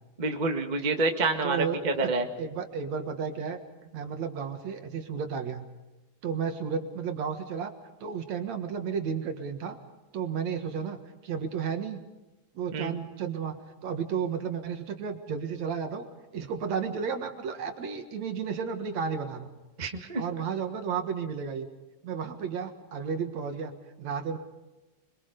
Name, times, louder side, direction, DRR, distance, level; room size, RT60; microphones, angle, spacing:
voice 1, 0.2-2.3 12.7-12.9 19.8-20.2, right 3 dB, 30° right, 4 dB, 0.7 m, -28 dB
voice 2, 1.4-2.1 2.4-3.6 3.9-5.7 6.2-7.7 8.0-9.8 10.1-11.0 11.2-12.0 12.6-16.1 16.3-19.5 20.2-21.7 22.0-23.7 24.0-24.4, right 6 dB, 55° right, 6 dB, 2.6 m, -32 dB
27.0 x 23.0 x 5.3 m, 1.1 s
omnidirectional pair, 4.1 m